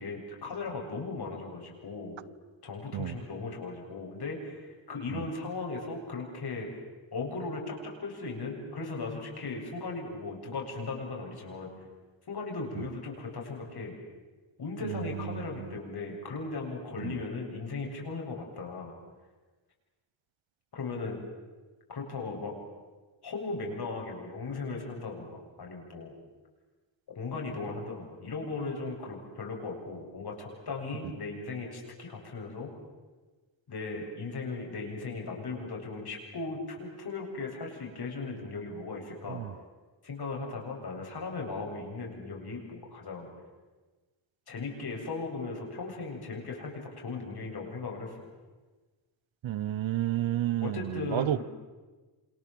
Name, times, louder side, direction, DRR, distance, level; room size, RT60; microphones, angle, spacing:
voice 1, 0.0-2.2 2.6-6.7 7.1-11.7 12.3-14.0 14.6-18.9 20.7-21.2 21.9-22.5 23.2-26.2 27.1-32.7 33.7-39.4 40.0-43.3 44.5-48.3 50.6-51.4, left 3 dB, 55° left, 8.0 m, -37 dB
voice 2, 14.8-15.4 17.0-17.1 39.3-39.5 49.4-51.4, right 13 dB, 80° right, 1.0 m, -31 dB
29.0 x 27.0 x 7.7 m
cardioid pair, 105°, 46 cm